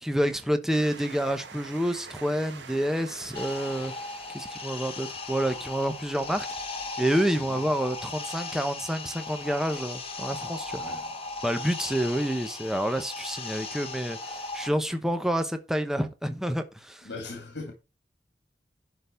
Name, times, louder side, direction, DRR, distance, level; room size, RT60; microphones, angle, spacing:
voice 1, 0.0-3.9 4.3-6.5 7.0-11.0 11.4-17.1, equal, 5° right, 0.9 m, -28 dB
Train, 0.7-11.9 12.6-12.7 12.9-13.0, right 4 dB, 85° right, 1.5 m, -49 dB
sound 1, 3.3-14.7, left 3 dB, 35° left, 2.0 m, -37 dB
voice 2, 10.8-11.1 17.0-17.7, left 3 dB, 70° left, 2.6 m, -39 dB
11.0 x 4.0 x 6.8 m
head